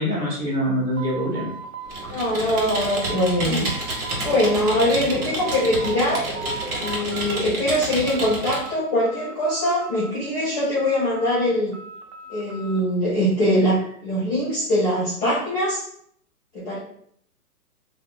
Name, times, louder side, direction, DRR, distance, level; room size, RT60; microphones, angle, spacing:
voice 1, 0.0-1.5, equal, 25° right, -4 dB, 0.9 m, -24 dB
sound 1, 0.9-3.4 3.7-4.7 5.1-6.1 6.3-7.4 7.8-8.8 9.0-10.3 10.8-12.8, right 5 dB, 50° right, 0.5 m, -38 dB
Computer keyboard, 1.9-8.7, right 1 dB, 70° right, 1.4 m, -30 dB
voice 2, 2.1-3.7 4.2-6.2 6.8-11.8 12.3-15.8 16.5-16.8, left 1 dB, 10° left, -8 dB, 0.6 m, -22 dB
2.8 x 2.4 x 3.8 m, 0.65 s
hypercardioid pair, 150°, 46 cm